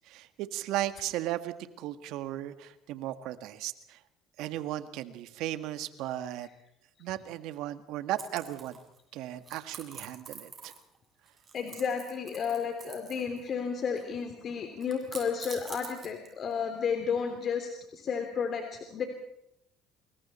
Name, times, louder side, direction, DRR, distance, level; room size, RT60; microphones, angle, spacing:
voice 1, 0.0-4.0 4.4-6.5 7.0-8.8 9.1-10.7, right 13 dB, 70° right, 10 dB, 1.8 m, -36 dB
sound 1, 8.2-9.0 9.4-11.0 11.2-13.4 13.6-14.2 14.8-16.5, right 5 dB, 35° right, 7.2 m, -46 dB
voice 2, 11.5-19.1, left 6 dB, 50° left, 5 dB, 3.3 m, -32 dB
28.5 x 22.0 x 4.4 m, 0.79 s
hypercardioid pair, 70°, 0 cm